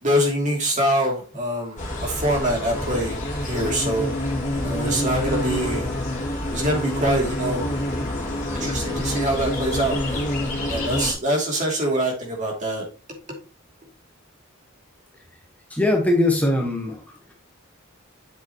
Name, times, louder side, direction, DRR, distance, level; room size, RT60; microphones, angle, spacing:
voice 1, 0.0-4.1 4.5-5.9 6.5-7.6 8.5-10.3 10.7-12.9, right 1 dB, 35° right, 0 dB, 2.8 m, -24 dB
sound 1, 1.8-11.1, left 1 dB, 35° left, 2.4 m, -27 dB
voice 2, 15.7-17.3, left 1 dB, 5° left, 0 dB, 1.2 m, -21 dB
7.9 x 6.9 x 3.0 m, 0.34 s
head